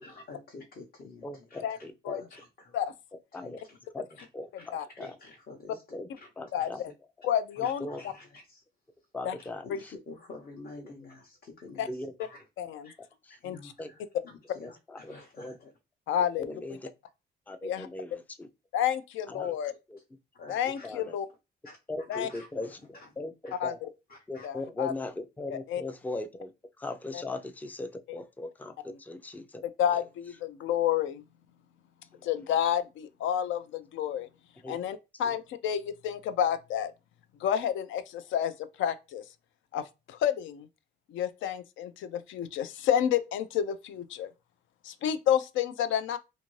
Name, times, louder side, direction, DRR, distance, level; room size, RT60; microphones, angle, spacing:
voice 1, 0.0-2.8 3.3-3.8 4.2-4.3 4.6-5.8 6.2-6.8 7.6-8.6 9.6-12.5 12.8-15.7 19.4-19.5 20.3-20.9 21.6-23.1 23.4-23.6 24.1-24.5, left 3 dB, 50° left, 0.7 m, -50 dB
voice 2, 1.2-2.2 3.3-3.6 3.9-4.1 4.3-4.5 5.0-5.1 5.9-6.1 6.4-6.8 7.8-8.0 9.1-9.6 11.9-12.1 13.8-13.9 14.6-15.5 16.4-16.8 17.5-18.5 19.3-19.6 19.9-20.0 20.8-21.1 21.9-22.7 23.2-23.8 24.3-26.5 26.8-29.6 34.6-34.8, left 2 dB, 10° left, 0.3 m, -38 dB
voice 3, 7.2-7.9 9.2-9.4 9.7-9.8 11.8-11.9 12.6-12.9 13.4-13.7 16.1-16.5 17.6-17.9 18.7-19.7 20.5-21.3 22.1-22.3 23.6-23.9 24.4-24.9 25.5-25.8 27.1-27.2 28.1-28.2 28.9-29.0 29.8-31.2 32.2-34.3 34.7-36.9 37.4-38.5 38.8-39.2 39.7-40.7 41.1-44.3 44.8-46.2, left 9 dB, 75° left, 0.4 m, -30 dB
2.6 x 2.5 x 3.0 m
cardioid pair, 90°, 20 cm